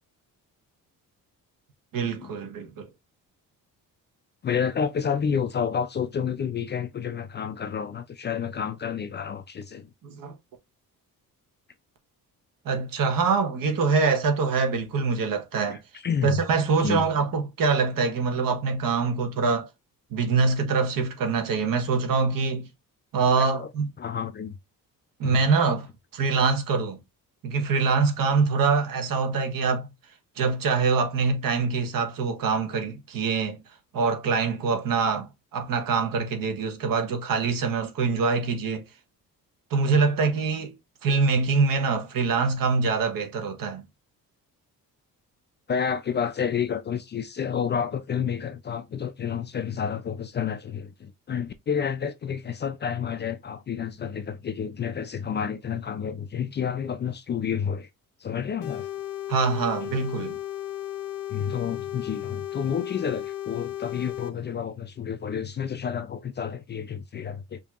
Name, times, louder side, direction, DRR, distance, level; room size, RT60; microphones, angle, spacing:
voice 1, 1.9-2.9 10.0-10.3 12.6-15.8 16.2-19.7 20.1-22.7 23.1-23.9 25.2-25.9 26.1-27.0 27.4-29.9 30.4-33.6 33.9-38.9 39.7-40.7 41.0-43.8 59.3-60.4, right 4 dB, 70° right, 1.2 m, -24 dB
voice 2, 4.4-9.9 15.7-16.4 16.8-17.1 23.4-23.7 24.0-24.6 25.2-25.4 45.7-57.9 58.2-58.9 61.3-67.6, left 7 dB, 30° left, 0.4 m, -30 dB
sound 1, 58.6-64.3, left 13 dB, 70° left, 0.7 m, -35 dB
5.2 x 2.8 x 2.4 m
cardioid pair, 175°, 35 cm